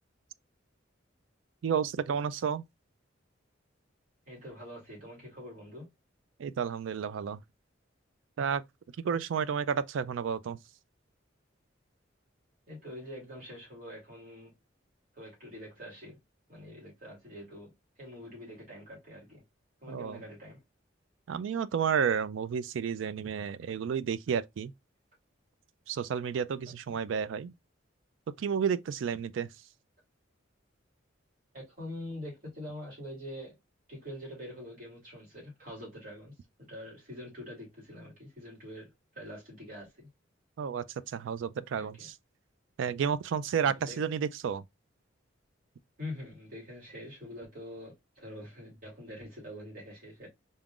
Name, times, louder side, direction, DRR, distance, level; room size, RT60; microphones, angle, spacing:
voice 1, 1.6-2.6 6.4-7.4 8.4-8.6 9.0-10.6 19.9-20.2 21.3-24.7 25.9-27.5 28.4-29.5 40.6-42.2 42.8-44.6, right 7 dB, 80° right, 0.3 m, -31 dB
voice 2, 4.3-5.9 12.7-14.5 15.1-16.2 16.5-17.7 18.0-19.4 19.8-20.6 26.9-27.0 31.5-33.6 33.9-36.3 36.6-40.1 41.8-42.1 43.6-44.0 46.0-50.3, left 1 dB, 50° right, 2.7 m, -45 dB
3.9 x 3.7 x 2.4 m
head